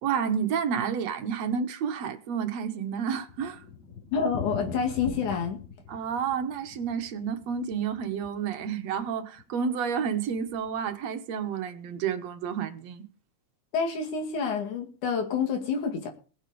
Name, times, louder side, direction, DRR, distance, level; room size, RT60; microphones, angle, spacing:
voice 1, 0.0-3.6 5.9-13.1, right 7 dB, 65° right, 2.3 m, -30 dB
Thunder, 2.6-8.7 9.0-9.1 9.4-9.5 9.7-9.8 10.4-10.7, left 6 dB, 50° left, 4.4 m, -42 dB
voice 2, 4.1-5.6 13.7-16.1, left 6 dB, 80° left, 3.6 m, -28 dB
21.0 x 7.0 x 5.1 m
omnidirectional pair, 3.4 m